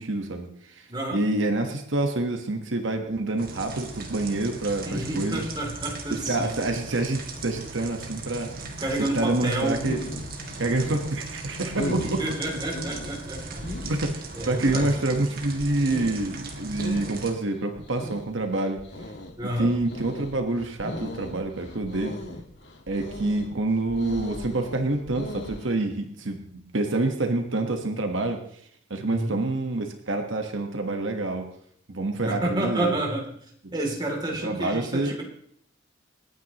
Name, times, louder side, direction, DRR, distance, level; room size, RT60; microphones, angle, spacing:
voice 1, 0.0-5.5 6.1-8.5 9.0-10.0 10.6-12.4 13.8-18.8 19.4-22.2 22.9-26.4 26.7-28.4 28.9-31.5 31.9-32.9 34.4-35.2, right 2 dB, 75° right, 4 dB, 1.4 m, -27 dB
voice 2, 0.9-1.2 4.8-6.5 8.8-9.8 11.8-13.6 14.3-14.9 19.4-19.7 29.1-29.4 32.2-33.3 33.7-35.2, right 1 dB, 20° right, 0 dB, 2.9 m, -29 dB
sound 1, 3.4-17.3, right 3 dB, 50° right, 2.0 m, -38 dB
sound 2, 9.5-25.7, left 1 dB, 65° left, 1.7 m, -38 dB
28.0 x 9.4 x 3.0 m, 0.66 s
head